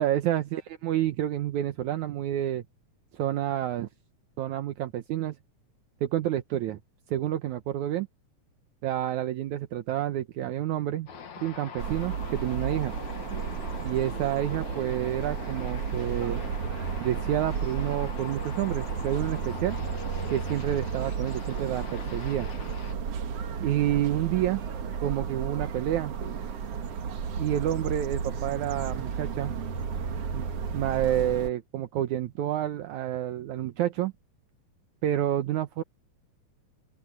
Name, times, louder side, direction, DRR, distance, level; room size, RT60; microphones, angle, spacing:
voice 1, 0.0-2.6 3.1-3.9 4.4-5.4 6.0-6.8 7.1-8.1 8.8-11.1 11.4-12.9 13.8-16.4 17.0-19.8 20.3-22.5 23.6-24.6 25.0-26.2 27.4-29.5 30.3-34.1 35.0-35.8, right 12 dB, 75° right, 2.3 m, -29 dB
sound 1, 11.1-23.0, left 7 dB, 65° left, 3.4 m, -43 dB
sound 2, 11.8-31.5, right 6 dB, 55° right, 2.3 m, -33 dB
open air
omnidirectional pair, 3.6 m